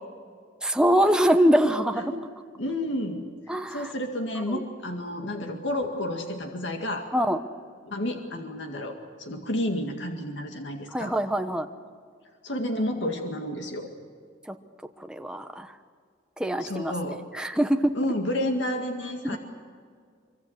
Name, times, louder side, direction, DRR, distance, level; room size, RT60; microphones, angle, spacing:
voice 1, 0.6-2.0 3.5-3.9 4.4-4.6 5.4-5.5 7.1-7.4 10.9-11.7 14.5-14.6 15.1-15.7 16.4-16.9 17.3-18.0 19.3-19.4, equal, 5° right, 6 dB, 1.1 m, -24 dB
voice 2, 1.9-2.2 2.6-7.1 7.9-11.1 12.4-13.9 16.6-17.2 17.9-19.4, left 1 dB, 70° left, 4 dB, 2.1 m, -31 dB
25.0 x 24.5 x 8.1 m, 2.1 s
head